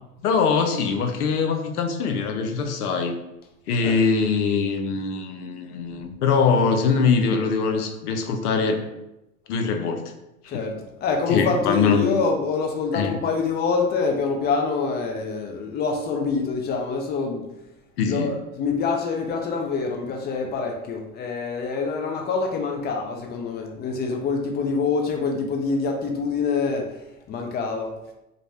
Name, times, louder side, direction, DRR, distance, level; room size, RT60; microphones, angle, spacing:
voice 1, 0.2-3.1 3.7-8.8 9.5-10.0 10.4-10.6 11.3-12.0 12.9-13.1 18.0-18.3, left 5 dB, 85° left, 5 dB, 0.6 m, -22 dB
voice 2, 10.5-17.4 18.1-26.9 27.3-27.9, left 4 dB, 25° left, 3 dB, 0.4 m, -25 dB
2.5 x 2.1 x 3.2 m, 0.90 s
hypercardioid pair, 90°, 44 cm